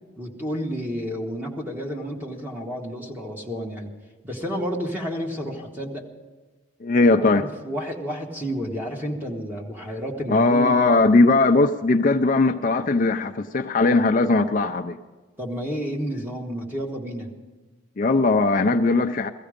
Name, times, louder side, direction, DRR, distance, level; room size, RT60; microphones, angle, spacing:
voice 1, 0.2-3.9 4.2-6.1 7.3-11.2 15.4-17.3, equal, 10° right, 1.7 m, -31 dB
voice 2, 6.8-7.5 10.3-15.0 18.0-19.3, left 3 dB, 40° left, 0.4 m, -19 dB
17.0 x 14.0 x 5.1 m
head